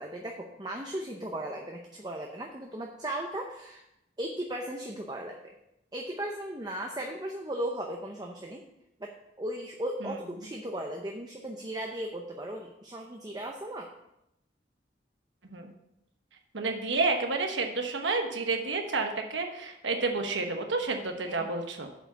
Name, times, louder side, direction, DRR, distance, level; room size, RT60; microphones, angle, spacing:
voice 1, 0.0-3.8 4.2-5.5 5.9-8.6 9.0-13.9 21.2-21.5, right 1 dB, 20° right, 1 dB, 0.6 m, -37 dB
voice 2, 16.5-21.9, right 3 dB, 85° right, 4 dB, 1.2 m, -30 dB
7.6 x 4.9 x 6.8 m, 0.85 s
head